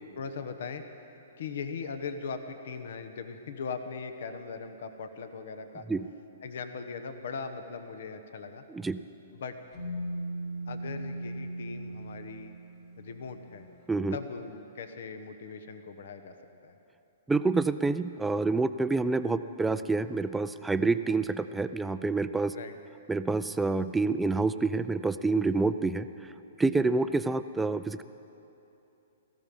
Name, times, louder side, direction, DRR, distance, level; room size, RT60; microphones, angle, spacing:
voice 1, 0.2-0.8 1.4-5.9 6.4-8.6 9.3-9.6 10.7-12.5 13.0-13.7 14.1-16.3 16.6-16.7 22.5-22.7, left 5 dB, 65° left, 8 dB, 1.1 m, -39 dB
sound 1, 9.7-13.6, right 1 dB, 40° left, 3.8 m, -38 dB
voice 2, 17.3-22.5 23.1-26.1 26.6-28.0, right 3 dB, 5° right, 11 dB, 0.4 m, -27 dB
17.5 x 14.5 x 5.4 m, 2.9 s
hypercardioid pair, 140°, 0 cm